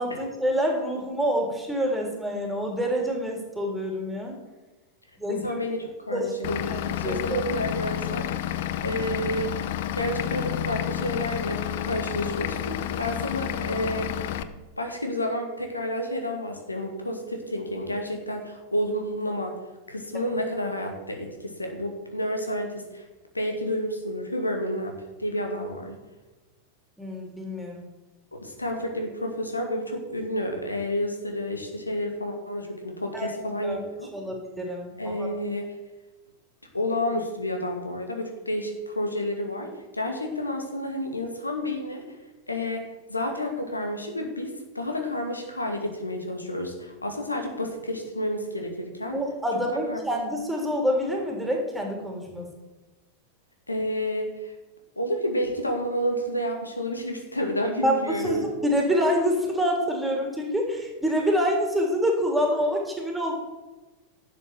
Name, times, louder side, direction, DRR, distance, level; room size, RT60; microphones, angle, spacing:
voice 1, 0.0-4.4 5.2-5.4 6.1-6.3 6.6-7.4 27.0-27.8 33.1-33.3 33.6-33.8 34.1-35.3 49.1-52.5 57.8-63.3, equal, 5° right, 0 dB, 3.6 m, -27 dB
voice 2, 5.3-14.1 14.8-19.6 19.9-23.0 23.3-26.0 28.3-34.1 35.0-35.7 36.7-42.1 42.5-49.2 49.9-50.0 53.7-54.6 55.0-58.4, left 1 dB, 80° left, 3 dB, 2.1 m, -30 dB
Vehicle / Engine, 6.4-14.4, left 11 dB, 55° left, 0.7 m, -30 dB
11.5 x 7.4 x 7.7 m, 1.1 s
figure-of-eight pair, 90°, 0 cm